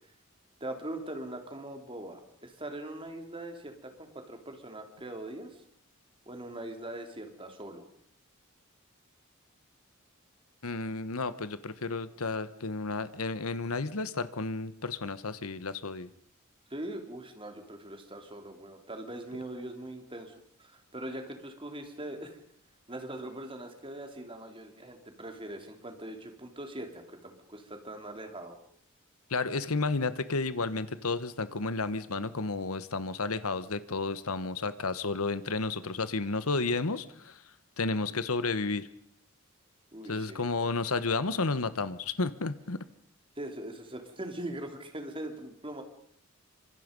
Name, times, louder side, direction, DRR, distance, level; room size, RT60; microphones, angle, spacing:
voice 1, 0.6-5.6 6.2-7.8 16.7-22.4 22.9-28.6 39.9-40.5 43.4-45.8, right 1 dB, 25° right, 5 dB, 3.4 m, -41 dB
voice 2, 10.6-16.1 29.3-37.4 37.8-38.9 40.1-42.8, left 3 dB, 90° left, 13 dB, 1.3 m, -32 dB
27.0 x 25.0 x 5.4 m, 0.64 s
head